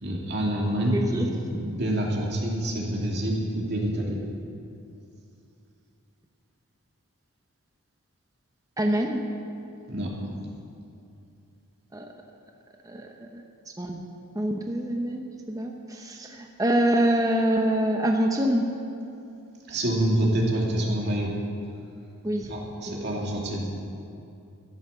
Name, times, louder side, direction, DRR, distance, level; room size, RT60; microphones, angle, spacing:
voice 1, 0.0-4.2 9.9-10.1 19.7-21.3 22.4-23.7, right 1 dB, 50° right, -2 dB, 2.5 m, -27 dB
voice 2, 0.9-1.3 8.8-9.2 11.9-12.0 12.9-13.1 13.3-13.4 13.8-14.1 14.3-18.7 22.2-22.5 22.9-23.1, right 1 dB, 15° right, 2 dB, 0.8 m, -25 dB
13.0 x 12.0 x 6.9 m, 2.6 s
head